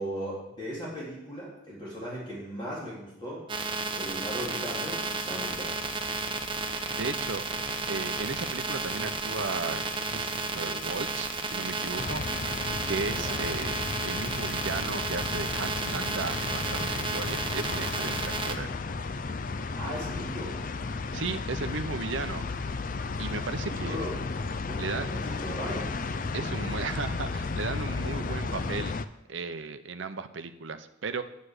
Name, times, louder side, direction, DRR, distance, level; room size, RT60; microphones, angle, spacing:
voice 1, 0.0-3.5 3.9-5.7 13.1-13.4 19.7-20.6 23.6-24.2 24.6-25.9, equal, 25° left, -7 dB, 3.8 m, -37 dB
sound 1, 3.5-18.6, right 3 dB, 25° right, 0.8 m, -33 dB
sound 2, 5.4-14.8, left 4 dB, 80° left, 1.0 m, -47 dB
voice 2, 6.6-7.4 7.9-9.8 10.1-12.6 12.9-18.7 21.1-22.4 23.2-24.0 24.8-25.1 26.3-29.0 29.3-31.2, right 4 dB, 70° right, 9 dB, 0.8 m, -35 dB
sound 3, 12.0-29.0, left 3 dB, 45° left, 0.5 m, -34 dB
10.0 x 8.4 x 6.6 m, 0.85 s
head